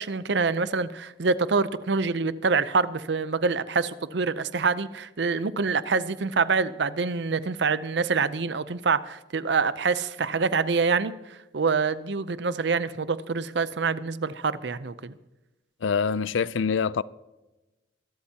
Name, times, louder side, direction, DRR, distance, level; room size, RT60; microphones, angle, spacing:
voice 1, 0.0-15.1, right 4 dB, 70° right, 0.6 m, -26 dB
voice 2, 15.8-17.0, left 6 dB, 85° left, 0.4 m, -25 dB
23.5 x 12.5 x 2.9 m
head